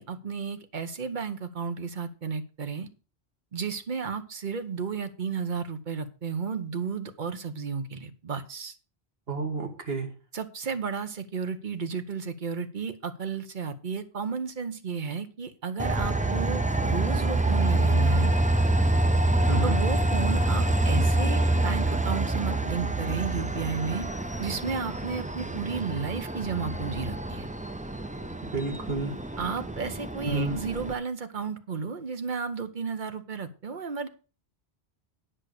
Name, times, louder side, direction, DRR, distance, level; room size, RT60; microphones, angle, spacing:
voice 1, 0.0-2.9 3.5-8.7 10.3-18.3 19.6-24.1 24.4-27.5 29.4-34.1, right 5 dB, 50° right, 9 dB, 1.2 m, -33 dB
voice 2, 9.3-10.1 19.5-19.8 28.5-29.2 30.3-30.6, right 3 dB, 65° right, 4 dB, 2.1 m, -30 dB
Train, 15.8-30.9, right 2 dB, 10° right, 0.5 m, -26 dB
10.0 x 5.6 x 6.5 m, 0.35 s
omnidirectional pair, 1.1 m